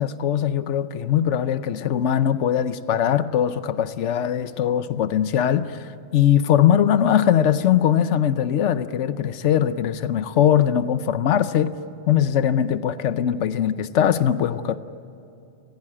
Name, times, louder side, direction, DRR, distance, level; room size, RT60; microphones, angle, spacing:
voice 1, 0.0-11.7 12.1-14.8, left 10 dB, 85° left, 1.1 m, -21 dB
29.0 x 16.0 x 8.8 m
omnidirectional pair, 1.2 m